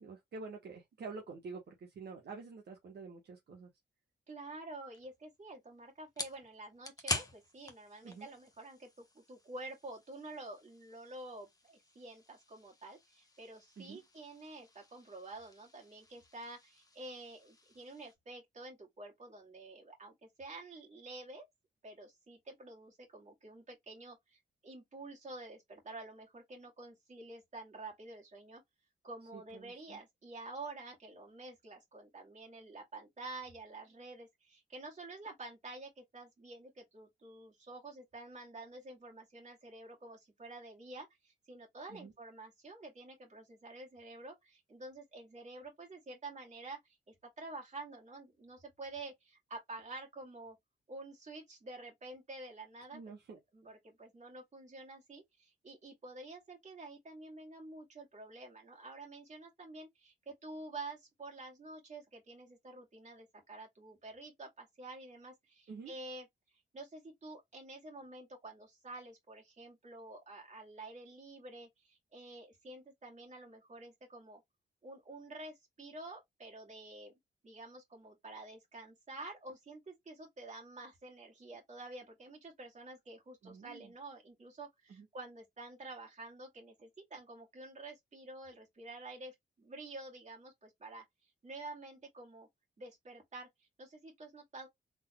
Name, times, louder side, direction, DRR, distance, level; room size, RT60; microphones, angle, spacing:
voice 1, 0.0-3.7 8.0-8.3 13.8-14.0 29.3-30.0 41.9-42.1 52.9-53.4 65.7-65.9 83.4-83.9 84.9-85.1, right 4 dB, 65° right, 1.1 m, -48 dB
voice 2, 4.3-21.5 21.8-28.6 29.0-50.6 50.9-53.0 53.5-66.3 66.5-74.4 74.8-77.1 77.4-92.5 92.8-94.7, right 2 dB, 40° right, 2.3 m, -49 dB
sound 1, 4.9-18.1, left 2 dB, 20° left, 1.0 m, -47 dB
4.0 x 3.7 x 2.2 m
wide cardioid pair, 110°, 18 cm